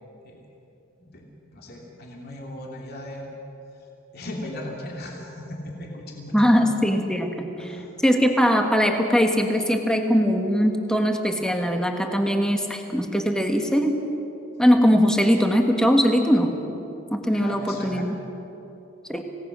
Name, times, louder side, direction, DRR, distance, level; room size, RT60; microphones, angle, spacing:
voice 1, 1.0-3.3 4.1-6.6 7.6-7.9 17.3-18.1, left 1 dB, 45° left, -1 dB, 3.0 m, -37 dB
voice 2, 6.3-7.5 8.0-14.0 14.6-16.5 17.1-18.2 19.1-19.3, equal, 5° left, 3 dB, 1.6 m, -21 dB
27.0 x 18.0 x 6.3 m, 2.9 s
head